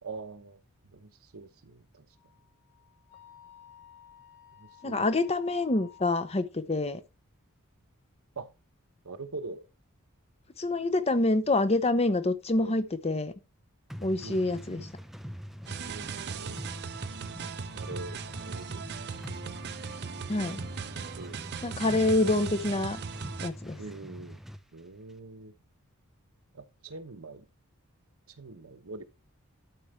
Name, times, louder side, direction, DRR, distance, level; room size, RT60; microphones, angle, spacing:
voice 1, 0.0-0.6 0.9-2.1 4.6-5.1 8.4-8.5 9.0-9.6 12.5-12.8 14.2-14.9 15.8-16.6 17.7-18.9 20.5-21.4 23.8-24.4 24.7-25.5 26.5-27.5 28.4-29.0, right 3 dB, 70° right, 1.0 m, -44 dB
Wind instrument woodwind instrument, 2.1-6.5, left 9 dB, 70° left, 4.4 m, -54 dB
voice 2, 4.8-7.0 10.6-13.3 14.0-14.9 20.3-20.6 21.6-23.0 23.4-23.8, left 2 dB, 30° left, 0.7 m, -27 dB
sound 1, 13.9-24.6, equal, ahead, 0.4 m, -43 dB
sound 2, 15.7-23.5, right 6 dB, 50° right, 0.6 m, -39 dB
12.5 x 4.8 x 3.2 m
head